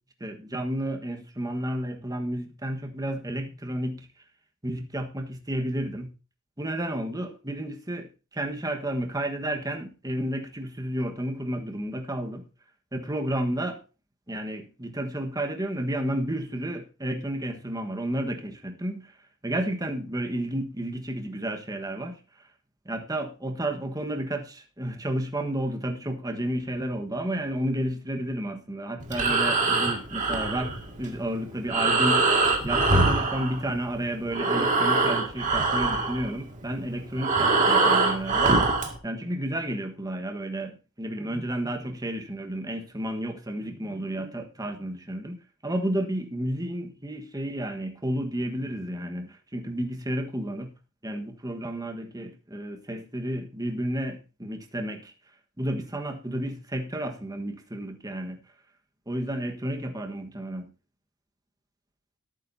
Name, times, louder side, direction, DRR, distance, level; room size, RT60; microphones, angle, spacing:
voice 1, 0.2-4.1 4.6-6.1 6.6-12.4 12.9-13.8 14.3-19.1 19.4-22.2 22.8-32.3 32.6-50.7 51.0-55.1 55.6-58.4 59.1-60.7, right 1 dB, 15° right, 5 dB, 1.3 m, -31 dB
Breathing, 29.0-34.0 34.3-38.9, right 3 dB, 35° right, 2.1 m, -24 dB
18.5 x 9.0 x 2.7 m, 0.32 s
head